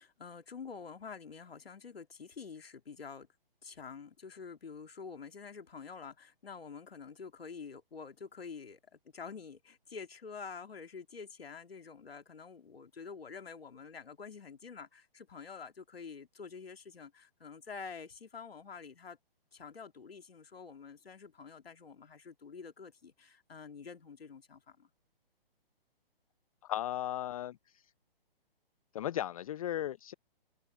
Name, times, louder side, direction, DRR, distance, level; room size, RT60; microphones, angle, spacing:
voice 1, 0.0-3.3 3.6-19.2 19.5-24.9, left 5 dB, 80° left, 2.3 m, -48 dB
voice 2, 26.6-27.6 28.9-30.1, left 12 dB, 35° left, 0.5 m, -36 dB
hypercardioid pair, 140°, 30 cm